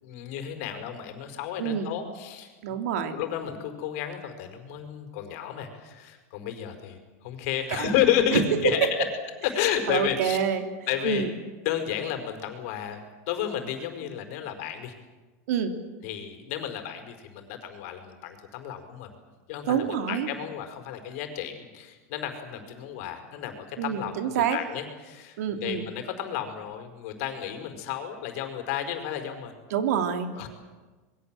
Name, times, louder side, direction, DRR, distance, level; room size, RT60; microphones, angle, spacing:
voice 1, 0.0-2.5 3.1-9.1 9.4-10.4 10.9-11.3 11.6-13.0 13.3-14.9 16.0-19.1 19.5-29.5 30.3-30.5, left 10 dB, 65° left, 6 dB, 4.9 m, -31 dB
voice 2, 1.6-1.9 2.6-3.2 7.7-7.9 8.3-8.7 9.9-10.6 11.0-11.3 15.5-15.7 19.7-20.3 23.8-24.6 25.4-25.8 29.7-30.3, right 8 dB, 80° right, 6 dB, 3.0 m, -26 dB
26.5 x 22.0 x 7.7 m, 1.3 s
supercardioid pair, 145°, 8 cm